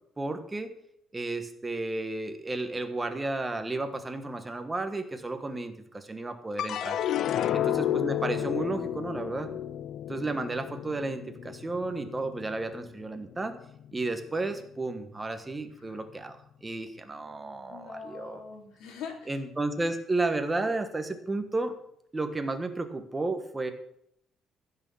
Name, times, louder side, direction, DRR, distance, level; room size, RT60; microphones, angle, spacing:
voice 1, 0.2-0.7 1.1-7.0 7.5-9.5 10.1-13.6 13.9-18.4 19.3-21.7 22.1-23.7, right 2 dB, 10° right, 7 dB, 1.2 m, -32 dB
sound 1, 6.6-13.0 13.5-14.2, left 11 dB, 50° left, 0.4 m, -32 dB
voice 2, 17.7-19.4, left 6 dB, 85° left, 2 dB, 3.4 m, -43 dB
15.0 x 6.4 x 7.0 m, 0.72 s
cardioid pair, 180°, 0 cm